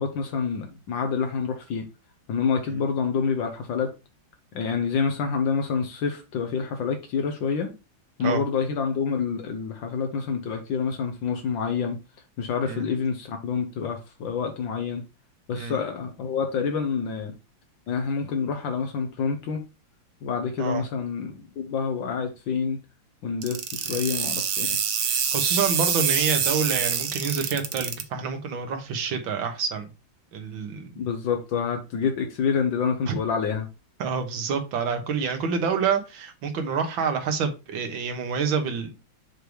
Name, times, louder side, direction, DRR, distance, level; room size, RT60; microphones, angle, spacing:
voice 1, 0.0-1.8 2.3-3.9 4.5-7.7 8.2-12.0 12.4-15.0 15.5-17.3 17.9-19.6 20.2-22.8 23.2-24.8 30.9-33.7, left 6 dB, 70° left, 5 dB, 1.5 m, -27 dB
sound 1, 23.4-28.0, right 7 dB, 55° right, 0.9 m, -25 dB
voice 2, 25.3-29.9 30.3-30.9 33.1-33.2 34.0-38.9, right 6 dB, 75° right, 5 dB, 1.9 m, -27 dB
6.7 x 3.3 x 4.6 m, 0.28 s
omnidirectional pair, 2.2 m